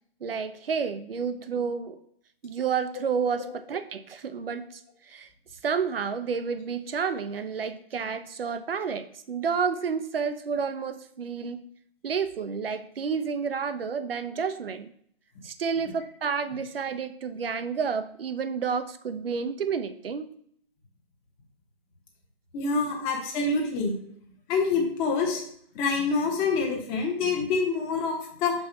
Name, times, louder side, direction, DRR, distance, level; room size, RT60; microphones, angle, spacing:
voice 1, 0.2-2.0 2.4-4.8 5.1-5.3 5.6-11.7 12.0-14.9 15.4-20.3 23.0-23.1, right 6 dB, 70° right, 11 dB, 0.8 m, -30 dB
voice 2, 22.5-24.0 24.5-25.4 25.7-28.5, left 4 dB, 15° left, 0 dB, 1.2 m, -26 dB
5.7 x 4.2 x 5.6 m, 0.64 s
hypercardioid pair, 150°, 30 cm